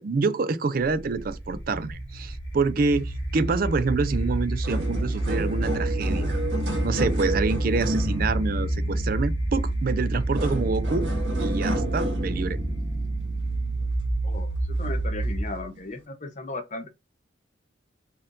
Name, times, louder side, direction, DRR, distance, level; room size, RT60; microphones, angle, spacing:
voice 1, 0.0-6.4 6.8-11.1 11.4-12.6, right 4 dB, 50° right, 0.4 m, -27 dB
sound 1, 0.8-15.7, right 1 dB, 85° left, 1.6 m, -28 dB
sound 2, 4.1-4.2 4.5-14.2 14.8-15.0 15.8-15.9, right 1 dB, 85° right, 1.6 m, -32 dB
voice 2, 14.2-16.9, left 2 dB, 40° left, 0.8 m, -36 dB
4.3 x 2.6 x 3.7 m
head